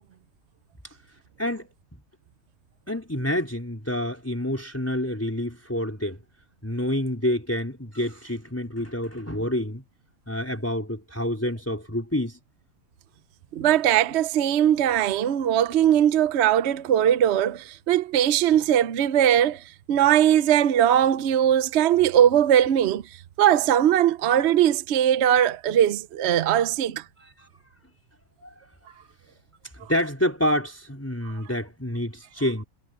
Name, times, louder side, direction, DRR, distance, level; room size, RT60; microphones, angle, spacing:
voice 1, 2.9-6.2 6.6-9.8 10.3-12.4 27.2-27.5 28.4-28.5 29.9-32.6, left 1 dB, 10° left, 4.1 m, -28 dB
voice 2, 13.5-23.0 23.4-27.0, right 10 dB, 60° right, 0.8 m, -20 dB
omnidirectional pair, 1.5 m